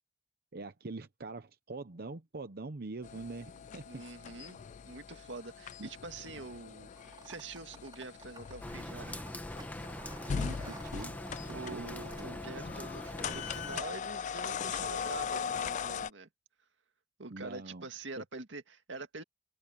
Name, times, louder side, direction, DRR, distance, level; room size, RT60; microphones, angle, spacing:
voice 1, 0.5-4.0 5.8-5.9 10.2-11.9 17.3-17.9, right 3 dB, 55° right, 0.8 m, -44 dB
sound 1, 3.0-16.1, left 7 dB, 40° left, 0.3 m, -40 dB
voice 2, 3.9-9.2 11.5-16.3 17.2-19.2, right 3 dB, 80° right, 2.0 m, -45 dB
sound 2, 6.9-15.7, right 3 dB, 25° right, 5.5 m, -56 dB
Rain, 8.6-13.8, left 1 dB, 10° left, 1.3 m, -43 dB
head